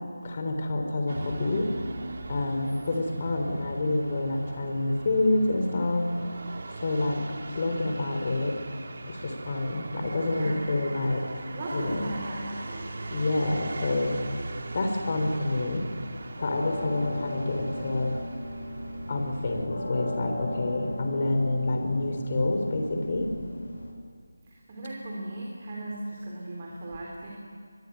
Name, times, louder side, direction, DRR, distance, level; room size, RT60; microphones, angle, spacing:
voice 1, 0.2-1.7 2.3-6.1 6.8-7.2 7.6-8.6 9.1-11.4 11.7-12.1 13.1-14.2 14.7-15.9 16.4-18.2 19.1-23.3, left 2 dB, 35° left, 4 dB, 3.7 m, -28 dB
sound 1, 1.1-19.7, right 2 dB, 50° right, 2.7 m, -40 dB
voice 2, 10.3-10.6 11.5-13.1 20.2-21.0 24.4-27.3, right 1 dB, 30° right, -3 dB, 4.2 m, -38 dB
sound 2, 16.4-23.9, left 1 dB, 75° left, 7.2 m, -37 dB
25.5 x 21.5 x 9.4 m, 2.1 s
figure-of-eight pair, 170°, 0 cm